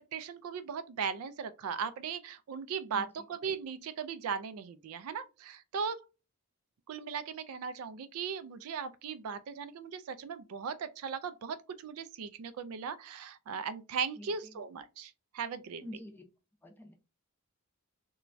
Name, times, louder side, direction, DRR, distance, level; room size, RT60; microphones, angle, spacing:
voice 1, 0.1-6.0 6.9-15.8, right 6 dB, 75° right, 0.3 m, -38 dB
voice 2, 14.2-14.6 15.8-16.2 16.6-16.9, left 1 dB, 10° left, 0.4 m, -47 dB
3.0 x 2.2 x 2.4 m
head